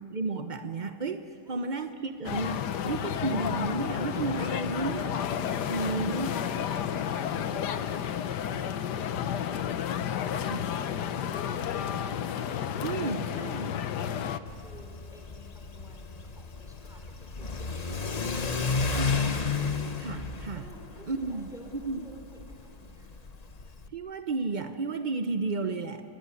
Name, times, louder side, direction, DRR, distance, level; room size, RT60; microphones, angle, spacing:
voice 1, 0.1-5.2 5.7-6.3 10.5-10.6 12.8-13.6 19.0-19.2 20.0-20.6 21.1-21.5 21.9-22.0 23.9-26.0, right 3 dB, 65° right, 8 dB, 0.4 m, -32 dB
voice 2, 1.4-1.8 12.8-19.3 20.6-23.1, equal, ahead, 1 dB, 5.0 m, -53 dB
sound 1, 2.2-14.4, left 9 dB, 60° left, 1.4 m, -31 dB
Car / Accelerating revving vroom, 14.5-23.9, left 4 dB, 35° left, 0.7 m, -32 dB
28.0 x 21.0 x 9.8 m, 2.4 s
omnidirectional pair, 2.2 m